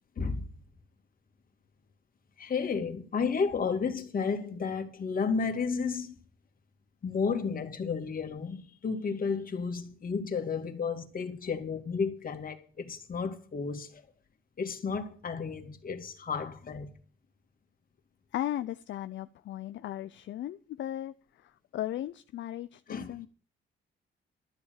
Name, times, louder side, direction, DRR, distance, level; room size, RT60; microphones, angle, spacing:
voice 1, 2.4-6.2 7.0-14.0 14.6-16.9 22.9-23.2, left 5 dB, 45° left, 2.4 m, -32 dB
voice 2, 18.3-23.3, left 12 dB, 70° left, 0.6 m, -37 dB
13.0 x 7.2 x 6.6 m
cardioid pair, 90°, 20 cm